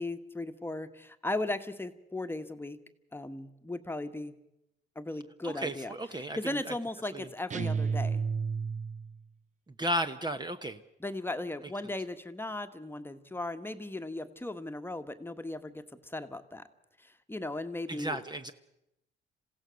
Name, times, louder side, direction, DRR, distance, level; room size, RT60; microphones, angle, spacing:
voice 1, 0.0-2.8 3.1-4.3 4.9-5.9 6.4-8.2 11.0-16.7 17.0-18.2, left 2 dB, 10° left, 8 dB, 1.4 m, -37 dB
voice 2, 5.4-6.7 7.1-7.3 9.8-10.8 17.9-18.5, equal, 20° right, 8 dB, 1.0 m, -34 dB
sound 1, 7.5-9.2, right 5 dB, 40° right, 0.7 m, -31 dB
27.5 x 16.0 x 6.4 m, 0.87 s
cardioid pair, 90°, 20 cm